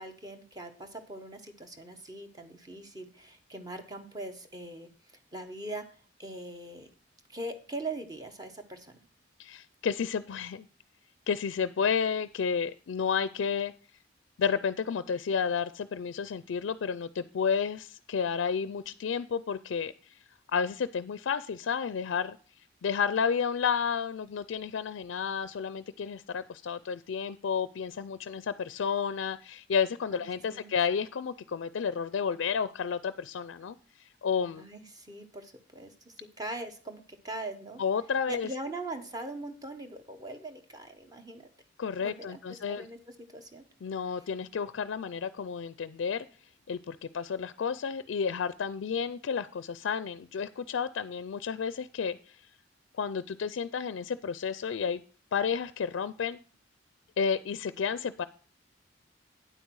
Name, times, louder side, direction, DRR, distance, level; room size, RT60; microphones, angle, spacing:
voice 1, 0.0-5.8 6.2-6.9 7.3-9.0 30.1-30.2 30.5-30.7 34.6-37.8 38.3-41.5 42.0-43.6, right 2 dB, 20° right, 6 dB, 1.0 m, -41 dB
voice 2, 9.4-10.7 11.3-13.7 14.4-19.9 20.5-22.4 22.8-33.8 34.2-34.6 37.8-38.5 41.8-42.9 43.8-46.3 46.7-52.2 53.0-55.0 55.3-56.4 57.2-58.2, left 6 dB, 75° left, 15 dB, 0.4 m, -31 dB
9.2 x 8.2 x 4.7 m, 0.39 s
head